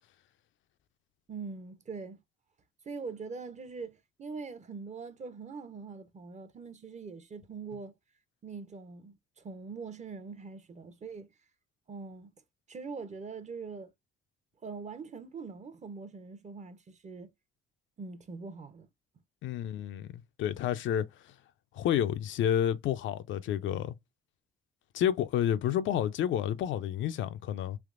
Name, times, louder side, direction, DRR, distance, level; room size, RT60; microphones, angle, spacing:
voice 1, 1.3-2.2 2.8-7.9 8.4-11.3 11.9-12.3 12.7-13.9 14.6-17.3 18.0-18.9, right 4 dB, 35° right, 0.7 m, -43 dB
voice 2, 19.4-21.3 21.7-24.0 24.9-27.8, left 10 dB, 75° left, 0.4 m, -30 dB
3.4 x 2.8 x 2.4 m
cardioid pair, 90°, 20 cm